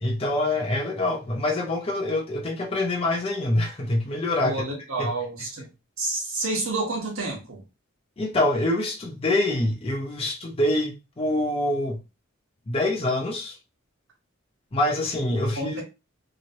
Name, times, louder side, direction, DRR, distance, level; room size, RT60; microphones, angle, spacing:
voice 1, 0.0-4.6 5.0-5.1 8.2-12.0 12.7-13.6 14.7-15.8, left 1 dB, 30° left, 0.6 m, -25 dB
voice 2, 4.4-5.7 6.0-7.6 15.6-15.8, right 2 dB, 90° right, 1.3 m, -29 dB
3.0 x 2.8 x 2.7 m
head